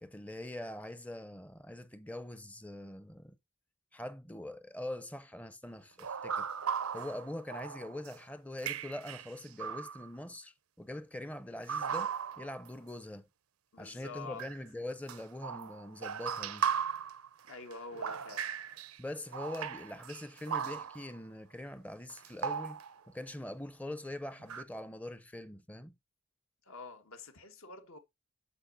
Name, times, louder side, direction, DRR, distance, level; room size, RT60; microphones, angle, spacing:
voice 1, 0.0-3.4 3.9-6.5 6.9-13.3 13.8-16.7 19.0-22.8 23.1-25.9, left 1 dB, 5° left, 0.5 m, -43 dB
sound 1, 6.0-8.2 8.6-10.1 11.7-12.7 14.4-14.6 15.1-19.0 19.3-21.2 22.1-23.1 24.4-24.6, right 7 dB, 90° right, 0.6 m, -37 dB
voice 2, 13.7-14.5 17.5-18.5 26.6-28.0, left 3 dB, 80° left, 1.5 m, -47 dB
12.0 x 4.4 x 2.6 m
head